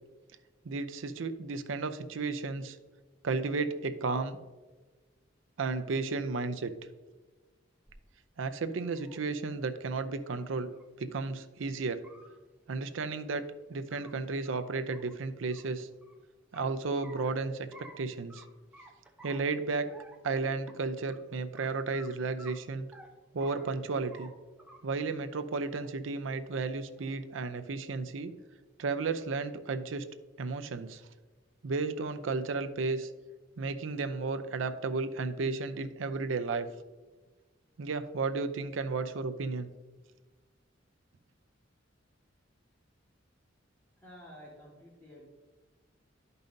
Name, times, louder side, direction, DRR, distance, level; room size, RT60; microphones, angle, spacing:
voice 1, 0.6-2.8 3.2-4.4 5.6-6.7 8.4-10.7 11.0-12.1 12.7-13.4 13.7-15.9 16.5-17.7 18.0-18.4 19.2-19.9 20.2-22.9 23.3-24.3 24.8-28.3 28.8-30.1 30.4-31.0 31.6-33.1 33.6-36.7 37.8-39.7, right 4 dB, 85° right, 10 dB, 0.5 m, -33 dB
sound 1, 7.9-8.0 8.6-9.2 10.3-10.4 10.7-10.8 11.2-11.3 11.9-12.3 13.5-14.1 14.4-14.6 14.9-16.1 16.5-17.3 17.7-18.0 18.3-18.5 18.7-19.5 19.9-20.3 20.7-20.8 21.1-21.2 21.6-21.7 21.9-22.1 22.4-23.1 23.4-23.8 24.1-24.3 24.6-25.0 25.4-25.9 26.7-27.2, right 1 dB, 5° right, 0.9 m, -53 dB
voice 2, 44.0-45.3, equal, 10° left, -6 dB, 1.6 m, -51 dB
11.5 x 5.4 x 2.6 m, 1.3 s
head